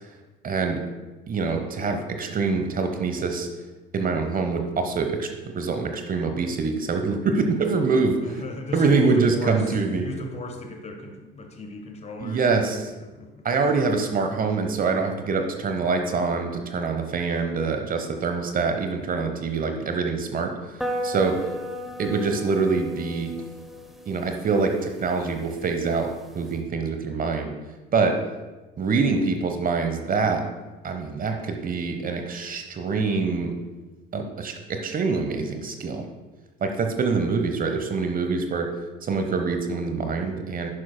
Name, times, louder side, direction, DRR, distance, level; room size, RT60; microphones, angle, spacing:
voice 1, 0.4-0.8 1.3-3.5 3.9-8.4 8.7-10.1 12.2-12.9 13.4-20.5 21.0-21.4 22.0-23.3 24.1-26.1 26.3-27.5 27.9-28.2 28.8-30.4 30.8-33.5 34.1-36.1 36.6-38.7 39.0-40.7, right 4 dB, 30° right, 5 dB, 1.0 m, -25 dB
voice 2, 8.2-9.7 10.0-13.5, left 2 dB, 20° left, 5 dB, 1.3 m, -36 dB
sound 1, 20.8-26.6, equal, ahead, 0.9 m, -36 dB
11.0 x 10.5 x 2.2 m, 1.2 s
figure-of-eight pair, 60°, 29 cm